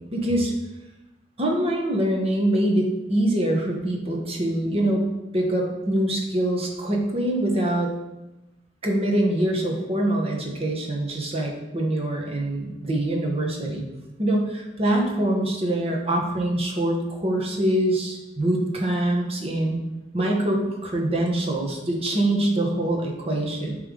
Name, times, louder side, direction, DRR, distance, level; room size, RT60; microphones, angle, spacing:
voice 1, 0.1-0.5 1.4-5.0 5.3-7.9 8.8-13.9 14.2-19.8 20.1-23.8, right 1 dB, 35° right, 0 dB, 1.1 m, -24 dB
8.8 x 3.3 x 3.7 m, 0.98 s
head